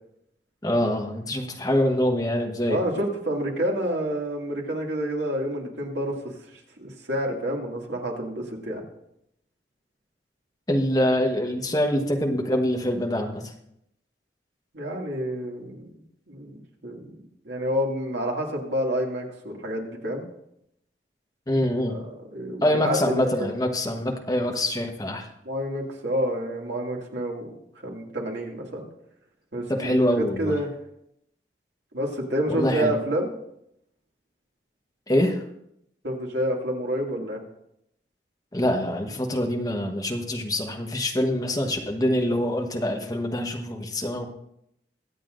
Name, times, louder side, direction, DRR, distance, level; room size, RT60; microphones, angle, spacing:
voice 1, 0.6-2.8 10.7-13.5 21.5-22.0 22.6-25.3 29.7-30.6 32.5-32.9 35.1-35.4 38.5-44.3, left 1 dB, 20° left, 2 dB, 1.2 m, -25 dB
voice 2, 2.7-6.1 6.8-8.8 14.7-15.9 16.3-20.2 21.9-22.0 22.3-23.0 23.2-23.5 25.5-27.5 27.8-28.9 29.5-30.7 31.9-33.3 36.0-37.4, equal, 80° right, -1 dB, 2.3 m, -28 dB
23.0 x 8.2 x 2.6 m, 0.77 s
head